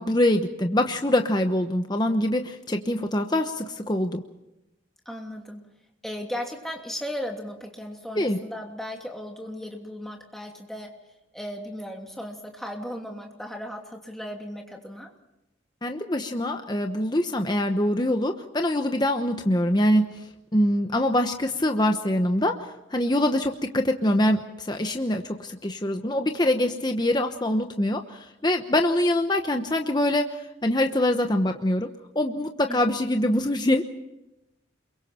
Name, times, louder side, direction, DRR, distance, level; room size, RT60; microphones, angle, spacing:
voice 1, 0.0-4.2 8.2-8.4 15.8-20.2 20.5-31.9 32.1-33.9, left 1 dB, 20° left, 5 dB, 1.0 m, -24 dB
voice 2, 5.0-5.6 6.0-10.9 11.3-15.1 32.7-33.0, equal, ahead, 1 dB, 2.9 m, -36 dB
29.5 x 23.0 x 4.4 m, 0.91 s
head